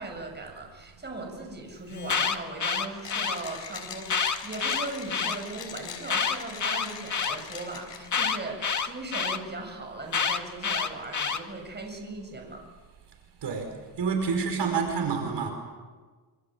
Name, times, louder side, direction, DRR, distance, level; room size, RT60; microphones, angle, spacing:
voice 1, 0.0-12.7, right 2 dB, 20° right, 2 dB, 7.1 m, -38 dB
Alarm, 1.9-3.4 4.0-5.4 6.0-7.4 8.1-9.4 10.1-11.4, left 6 dB, 40° left, 2.0 m, -27 dB
Mechanisms, 3.0-8.3, left 7 dB, 65° left, 6.2 m, -42 dB
voice 2, 14.0-15.5, right 5 dB, 60° right, 4 dB, 5.1 m, -27 dB
27.5 x 26.0 x 7.6 m, 1.4 s
cardioid pair, 130°, 47 cm